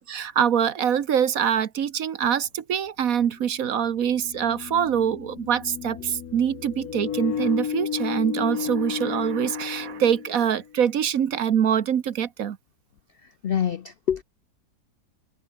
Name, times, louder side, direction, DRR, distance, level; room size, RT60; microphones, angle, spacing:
voice 1, 0.0-12.6, right 8 dB, 55° right, 1.4 m, -24 dB
sound 1, 2.3-2.4 3.8-10.7, left 8 dB, 60° left, 1.6 m, -33 dB
voice 2, 13.4-14.2, left 9 dB, 80° left, 0.5 m, -25 dB
omnidirectional pair, 1.9 m